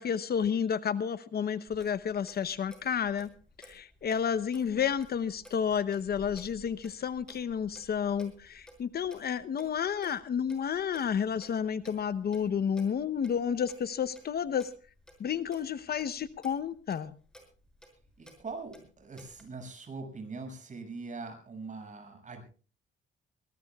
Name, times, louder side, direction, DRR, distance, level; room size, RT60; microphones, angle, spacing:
voice 1, 0.0-3.3 3.6-14.7 15.2-17.2, left 7 dB, 50° left, 14 dB, 0.9 m, -31 dB
Clock, 1.7-19.4, right 1 dB, 5° left, 6.5 m, -56 dB
voice 2, 18.2-22.4, right 4 dB, 40° right, 5 dB, 6.9 m, -42 dB
22.5 x 19.5 x 2.4 m, 0.36 s
cardioid pair, 90°, 20 cm